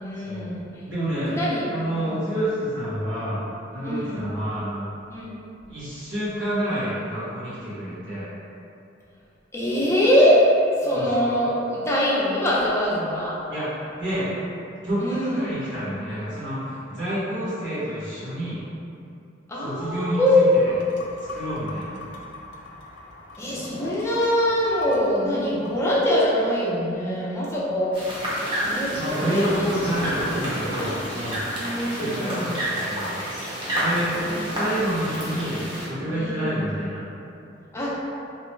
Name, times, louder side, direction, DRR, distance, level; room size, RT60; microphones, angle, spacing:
voice 1, 0.0-0.8 1.2-2.3 3.8-4.3 5.1-5.4 9.5-10.4 10.8-13.4 15.0-15.5 19.5-20.8 23.4-28.1 28.6-29.7 31.6-32.7 34.2-34.4 36.1-36.6 37.7-37.9, left 1 dB, 15° left, -7 dB, 0.5 m, -23 dB
voice 2, 0.8-1.4 1.7-3.4 3.7-4.8 5.7-8.3 10.9-11.3 13.5-13.7 14.0-14.3 14.8-18.6 19.6-20.4 21.2-21.9 28.9-31.4 32.0-33.1 33.8-34.2 34.5-37.0, right 1 dB, 80° right, -11 dB, 1.4 m, -28 dB
sound 1, 20.7-26.0, left 2 dB, 70° left, 0.4 m, -42 dB
sound 2, 27.9-35.9, equal, 25° right, 0.7 m, -29 dB
3.0 x 2.1 x 3.1 m, 2.6 s
head